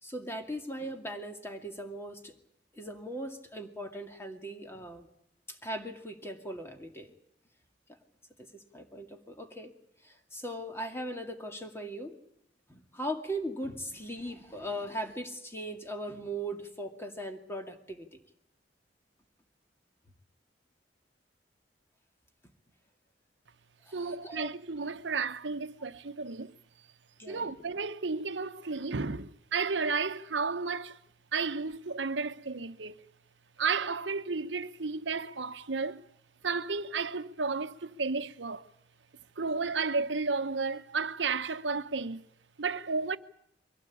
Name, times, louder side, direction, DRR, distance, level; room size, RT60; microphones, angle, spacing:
voice 1, 0.0-2.3 2.7-5.1 5.5-7.1 8.4-9.7 10.0-12.2 12.7-18.2 23.8-24.5 27.2-27.5, right 1 dB, 15° left, 2.3 m, -39 dB
voice 2, 23.9-26.5 27.3-31.0 31.3-33.0 33.6-36.0 36.4-38.6 39.4-42.3 42.6-43.2, right 4 dB, 90° right, 0.9 m, -32 dB
23.0 x 17.0 x 8.5 m
head